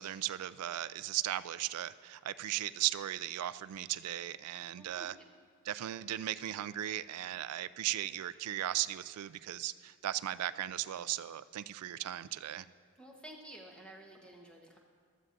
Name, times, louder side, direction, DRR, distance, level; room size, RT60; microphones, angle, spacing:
voice 1, 0.0-5.1 5.6-12.6, right 13 dB, 90° right, 15 dB, 0.3 m, -37 dB
voice 2, 4.7-5.3 13.0-14.8, right 1 dB, 5° left, -1 dB, 1.2 m, -52 dB
15.0 x 13.0 x 2.6 m, 2.1 s
head